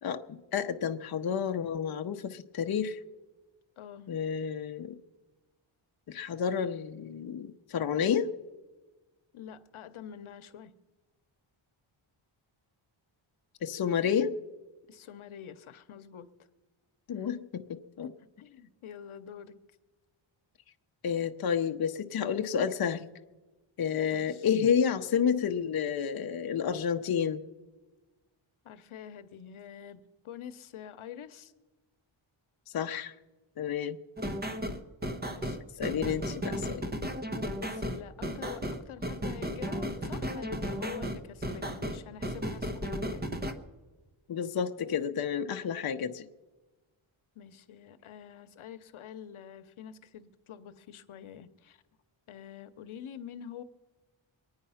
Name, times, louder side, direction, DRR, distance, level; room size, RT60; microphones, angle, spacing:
voice 1, 0.0-3.0 4.1-4.9 6.1-8.3 13.6-14.4 17.1-18.1 21.0-23.1 23.8-27.4 32.7-33.1 33.6-34.0 35.8-36.9 44.3-46.3, left 7 dB, 50° left, 6 dB, 0.7 m, -30 dB
voice 2, 3.8-4.1 9.3-10.7 14.9-16.3 17.1-17.3 18.0-19.6 24.1-24.5 28.6-31.5 35.2-35.6 37.6-43.2 47.3-51.8 52.3-53.6, left 9 dB, 80° left, 12 dB, 0.9 m, -46 dB
sound 1, 34.2-43.5, equal, 20° right, 1.0 m, -34 dB
23.0 x 9.6 x 5.6 m, 1.2 s
wide cardioid pair, 120°, 49 cm